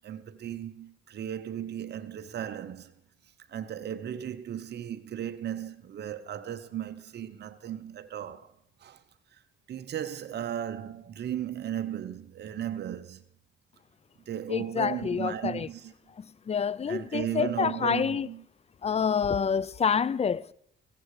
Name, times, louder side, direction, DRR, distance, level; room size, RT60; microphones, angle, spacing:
voice 1, 0.0-2.9 3.5-8.5 8.8-9.0 9.3-9.4 9.7-13.2 14.3-15.9 16.9-18.4, right 10 dB, 55° right, 0.9 m, -36 dB
voice 2, 14.5-15.7 16.5-18.3 18.8-20.5, left 6 dB, 30° left, 0.5 m, -27 dB
15.5 x 13.5 x 4.9 m
cardioid pair, 90°, 20 cm